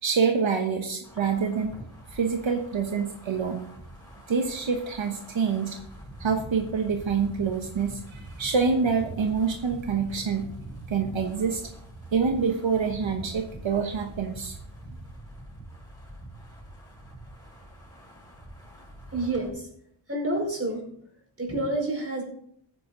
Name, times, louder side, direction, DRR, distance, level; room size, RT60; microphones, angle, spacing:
voice 1, 0.0-1.8 2.1-3.6 4.3-5.8 6.2-10.5 10.9-11.7 12.1-14.6, right 5 dB, 75° right, 4 dB, 1.2 m, -26 dB
Wind, 1.0-19.5, right 1 dB, 10° left, 5.9 m, -44 dB
voice 2, 19.1-19.7 20.1-20.8 21.4-22.2, right 2 dB, 30° right, 0 dB, 4.8 m, -28 dB
14.5 x 9.3 x 3.9 m, 0.68 s
wide cardioid pair, 105°, 47 cm